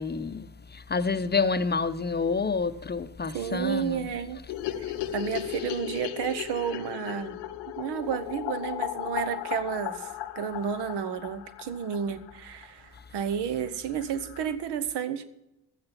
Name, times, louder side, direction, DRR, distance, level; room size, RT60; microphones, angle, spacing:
voice 1, 0.0-4.1, left 4 dB, 25° left, 0.6 m, -28 dB
voice 2, 3.3-4.4 4.8-7.4 7.7-15.2, right 8 dB, 75° right, 1.0 m, -31 dB
sound 1, 4.5-12.7 13.0-13.1 13.3-13.4 13.7-13.8 14.0-14.5, left 13 dB, 90° left, 0.7 m, -36 dB
12.0 x 8.7 x 5.8 m
supercardioid pair, 50°, 40 cm